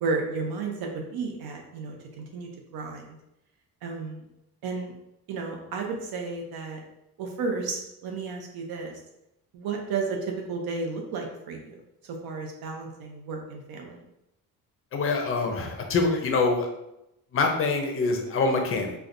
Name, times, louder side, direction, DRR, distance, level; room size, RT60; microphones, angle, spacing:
voice 1, 0.0-3.2 3.8-4.2 4.6-4.9 5.3-6.8 7.2-9.0 9.5-14.0, right 4 dB, 75° right, 2 dB, 0.8 m, -33 dB
voice 2, 14.9-16.7 17.3-18.9, left 3 dB, 35° left, 3 dB, 0.5 m, -25 dB
4.4 x 2.3 x 2.6 m, 0.86 s
cardioid pair, 150°, 37 cm